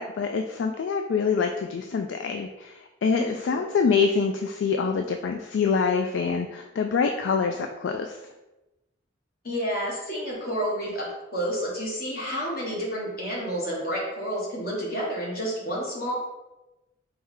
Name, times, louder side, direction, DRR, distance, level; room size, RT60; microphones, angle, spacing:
voice 1, 0.0-8.2, left 5 dB, 70° left, 5 dB, 0.3 m, -25 dB
voice 2, 3.1-3.7 9.4-16.1, equal, 50° left, -3 dB, 1.4 m, -30 dB
4.5 x 3.1 x 3.7 m, 1.0 s
head